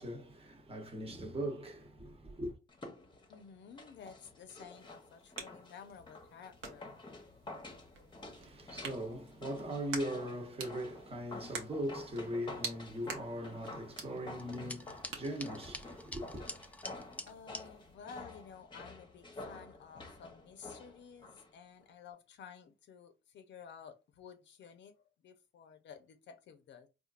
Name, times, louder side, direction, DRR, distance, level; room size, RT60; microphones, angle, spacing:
voice 1, 0.0-2.6 8.3-16.5, equal, 30° right, 1.0 m, -40 dB
sound 1, 2.7-21.5 21.8-21.9, left 2 dB, 25° left, 0.9 m, -50 dB
voice 2, 3.3-7.0 17.3-26.9, left 7 dB, 65° left, 0.7 m, -53 dB
sound 2, 4.7-18.0, right 5 dB, 90° right, 0.8 m, -50 dB
sound 3, 14.4-17.6, left 1 dB, 5° left, 0.4 m, -46 dB
4.3 x 2.4 x 2.4 m
cardioid pair, 90°, 20 cm